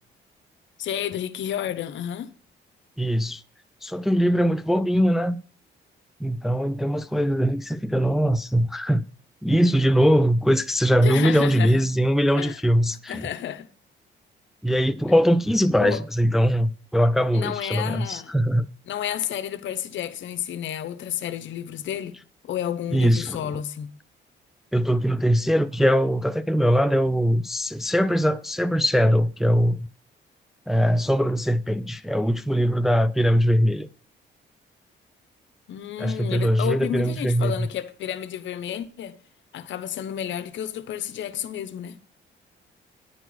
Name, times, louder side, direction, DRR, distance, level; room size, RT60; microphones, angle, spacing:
voice 1, 0.8-2.3 11.0-11.8 12.3-12.6 13.1-13.7 15.8-16.0 17.3-18.3 18.9-22.2 22.4-24.0 35.7-39.2 39.5-42.0, left 10 dB, 70° left, 0.9 m, -31 dB
voice 2, 3.0-3.4 3.8-5.4 6.2-9.0 9.4-13.3 14.6-18.7 22.9-23.4 24.7-29.9 30.7-33.9 36.0-37.7, equal, ahead, 0.4 m, -21 dB
10.0 x 4.5 x 6.1 m
cardioid pair, 90°, 20 cm